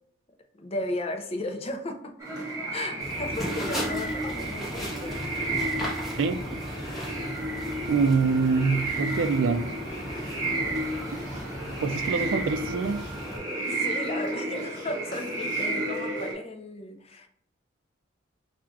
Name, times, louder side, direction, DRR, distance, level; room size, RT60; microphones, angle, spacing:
voice 1, 0.5-2.1 2.7-5.2 13.6-17.3, left 1 dB, 30° left, 4 dB, 0.5 m, -35 dB
sound 1, 2.2-16.3, right 1 dB, 20° right, 1.4 m, -32 dB
sound 2, 3.0-13.4, equal, ahead, 1.1 m, -37 dB
voice 2, 7.9-9.7 11.1-11.2 11.8-13.0, right 4 dB, 85° right, 10 dB, 0.4 m, -25 dB
5.7 x 2.4 x 2.3 m, 0.66 s
head